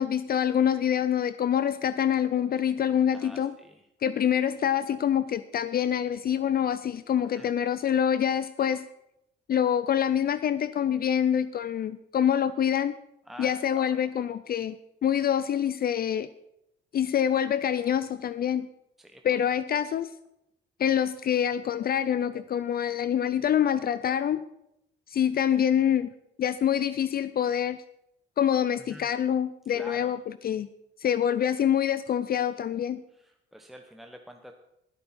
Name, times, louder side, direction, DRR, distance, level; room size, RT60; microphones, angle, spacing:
voice 1, 0.0-3.5 4.0-8.9 9.5-13.0 13.4-14.8 15.0-16.3 16.9-18.7 19.2-20.1 20.8-24.4 25.1-26.1 26.4-27.8 28.4-30.7 31.0-33.0, left 9 dB, 50° left, 14 dB, 0.5 m, -26 dB
voice 2, 3.1-3.8 7.3-7.5 13.3-14.1 19.0-19.2 28.9-29.1 29.7-30.2 33.2-34.5, equal, ahead, 4 dB, 1.0 m, -47 dB
19.5 x 8.5 x 4.3 m, 0.82 s
cardioid pair, 90°, 20 cm